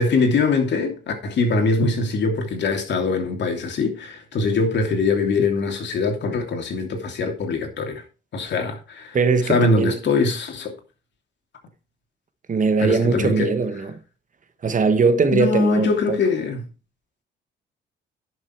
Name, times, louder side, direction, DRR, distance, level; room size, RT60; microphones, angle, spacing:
voice 1, 0.0-8.0 8.3-9.2 9.4-10.8 12.8-13.5 15.3-16.6, left 4 dB, 60° left, 2.9 m, -22 dB
voice 2, 9.1-10.0 12.5-13.9 14.6-16.2, right 4 dB, 40° right, 1.5 m, -20 dB
11.0 x 6.5 x 4.6 m
cardioid pair, 90°, 20 cm